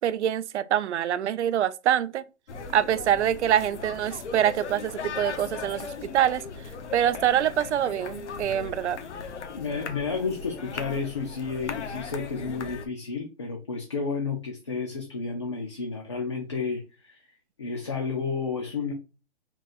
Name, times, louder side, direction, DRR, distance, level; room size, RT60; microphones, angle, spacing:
voice 1, 0.0-2.2 2.7-6.4 6.9-9.0, right 10 dB, 85° right, 0.5 m, -25 dB
sound 1, 2.5-12.9, left 5 dB, 85° left, 0.9 m, -38 dB
voice 2, 9.5-17.2 17.6-18.9, left 4 dB, 25° left, 0.4 m, -31 dB
3.8 x 2.4 x 4.1 m
hypercardioid pair, 170°, 34 cm